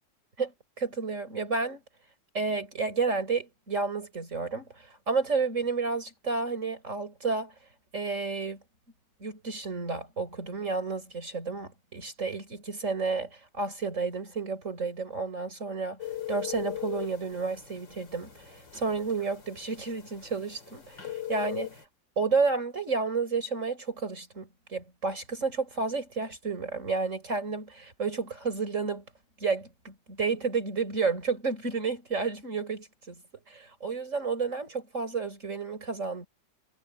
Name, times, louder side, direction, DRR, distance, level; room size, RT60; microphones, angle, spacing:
voice 1, 0.4-1.8 2.3-7.5 7.9-8.6 9.2-16.0 16.3-21.8 22.2-29.0 29.4-33.2 33.5-36.3, right 4 dB, 40° right, 5.3 m, -31 dB
sound 1, 16.0-21.8, left 12 dB, 90° left, 4.2 m, -40 dB
omnidirectional pair, 1.9 m